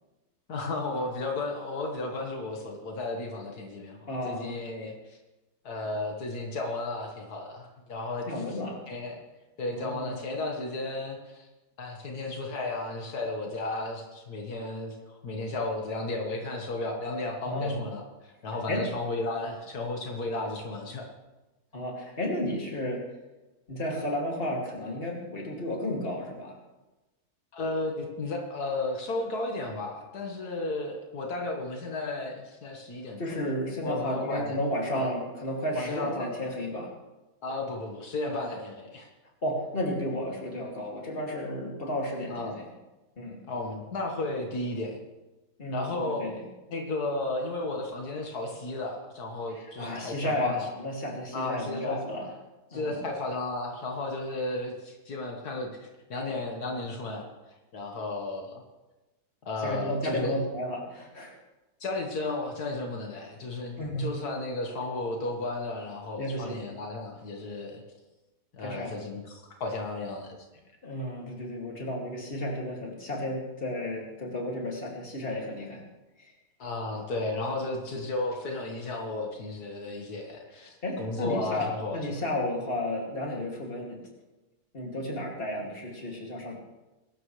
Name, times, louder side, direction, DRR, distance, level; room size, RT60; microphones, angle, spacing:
voice 1, 0.5-4.0 4.3-5.2 5.6-8.6 8.9-9.2 9.6-11.5 11.8-21.0 27.5-33.2 33.8-34.6 34.9-35.1 35.7-36.4 37.4-39.1 42.3-42.5 43.5-45.0 45.7-46.3 46.7-50.6 51.3-52.0 52.7-57.3 57.7-58.6 59.4-60.3 61.8-67.8 68.5-70.4 76.6-82.1, left 2 dB, 80° left, 1 dB, 2.1 m, -34 dB
voice 2, 4.1-4.6 8.3-8.8 9.7-10.2 17.4-17.7 18.7-18.8 21.7-23.0 23.7-26.6 33.2-36.9 39.4-42.7 43.2-43.4 45.6-46.4 49.6-52.3 52.7-53.0 59.6-61.3 63.8-64.2 66.2-66.6 68.6-69.0 70.8-75.8 76.2-76.3 80.8-84.0 84.7-86.6, left 1 dB, 35° left, -1 dB, 2.8 m, -32 dB
21.5 x 12.0 x 3.3 m, 1.1 s
omnidirectional pair, 1.6 m